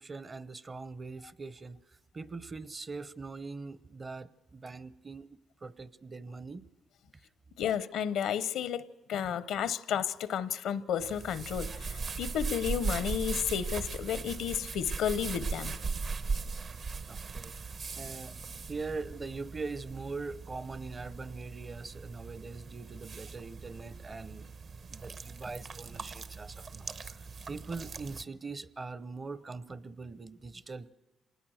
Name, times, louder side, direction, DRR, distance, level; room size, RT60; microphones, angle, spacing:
voice 1, 0.0-6.7 17.1-24.5 24.9-30.9, right 4 dB, 35° right, 0.8 m, -42 dB
voice 2, 7.6-15.8, left 9 dB, 80° left, 0.8 m, -32 dB
sound 1, 11.0-28.2, right 4 dB, 55° right, 1.1 m, -39 dB
26.5 x 19.5 x 6.4 m
cardioid pair, 80°, 0 cm